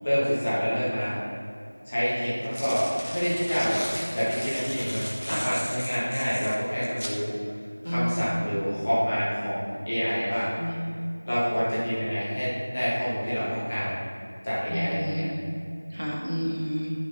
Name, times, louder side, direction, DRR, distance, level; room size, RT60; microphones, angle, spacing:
voice 1, 0.0-1.2 1.8-3.8 4.1-7.3 7.8-10.5 11.3-14.0 14.4-15.3, equal, 15° left, -13 dB, 1.4 m, -27 dB
sound 1, 1.1-1.2 2.2-7.2, equal, 60° left, 1.3 m, -37 dB
voice 2, 7.8-8.5 10.6-11.0 14.7-15.4 15.9-16.9, equal, 60° right, -3 dB, 1.8 m, -30 dB
9.6 x 5.5 x 4.1 m, 2.4 s
figure-of-eight pair, 175°, 0 cm